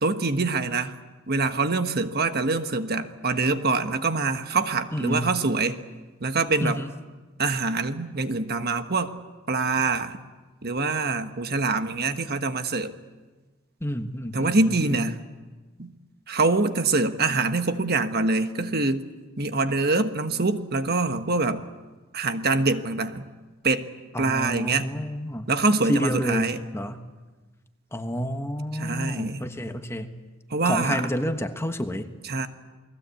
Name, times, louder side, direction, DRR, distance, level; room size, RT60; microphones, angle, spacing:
voice 1, 0.0-1.0 1.3-5.8 6.2-6.8 7.4-9.1 9.5-10.2 10.6-12.9 14.3-15.2 15.8-15.9 16.3-19.0 19.4-21.6 22.1-23.3 23.6-23.9 24.2-24.9 25.5-26.6 28.7-29.4 30.5-31.1 32.2-32.5, right 3 dB, 50° right, 8 dB, 1.3 m, -24 dB
voice 2, 4.9-5.3 6.6-6.9 13.8-15.0 24.1-25.5 25.9-27.1 27.9-30.2 30.6-32.1, equal, 10° left, 7 dB, 1.2 m, -29 dB
29.0 x 20.5 x 8.4 m, 1.3 s
head